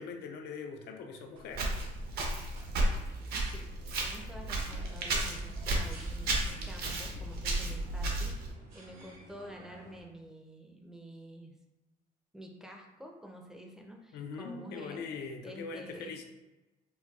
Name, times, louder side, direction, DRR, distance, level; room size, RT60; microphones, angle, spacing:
voice 1, 0.0-1.7 14.1-16.2, left 5 dB, 75° left, 4 dB, 0.5 m, -41 dB
sound 1, 0.8-10.0, right 1 dB, 85° right, 1.3 m, -56 dB
Walk footsteps, 1.5-8.5, right 2 dB, 65° right, 0.7 m, -33 dB
voice 2, 3.0-3.7 4.0-8.3 8.7-11.5 12.3-15.1 15.4-16.2, equal, 5° right, 1 dB, 0.5 m, -49 dB
4.0 x 2.2 x 2.3 m, 1.0 s
cardioid pair, 110°, 17 cm